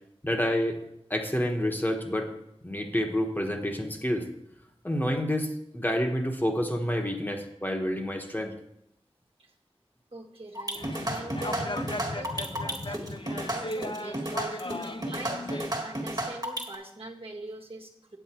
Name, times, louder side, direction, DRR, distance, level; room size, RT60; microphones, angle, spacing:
voice 1, 0.2-0.8 1.1-2.3 2.6-4.3 4.8-8.5, equal, 20° left, 2 dB, 1.3 m, -28 dB
voice 2, 10.1-18.2, right 2 dB, 60° right, 0 dB, 1.5 m, -43 dB
sound 1, 10.5-16.8, right 1 dB, 35° right, 1.8 m, -32 dB
sound 2, 10.7-15.7, left 1 dB, 50° left, 0.7 m, -36 dB
9.4 x 7.6 x 4.5 m, 0.79 s
wide cardioid pair, 50°, 11 cm